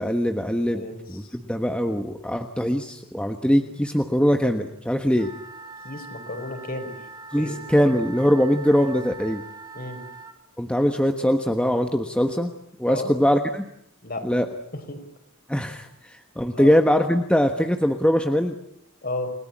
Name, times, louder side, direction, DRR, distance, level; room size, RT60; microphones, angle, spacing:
voice 1, 0.0-0.8 1.1-5.3 7.3-9.4 10.6-12.5 12.8-13.6 14.2-14.5 15.5-18.6, equal, 5° left, 5 dB, 1.3 m, -22 dB
voice 2, 0.7-1.3 3.5-3.7 5.8-7.0 7.4-7.6 9.7-10.0 12.8-13.1 14.0-14.3 14.7-15.0 16.5-16.7 19.0-19.3, left 2 dB, 45° left, 6 dB, 5.1 m, -33 dB
Wind instrument woodwind instrument, 5.1-10.4, right 3 dB, 20° right, 2.9 m, -42 dB
29.5 x 18.5 x 8.7 m, 0.75 s
head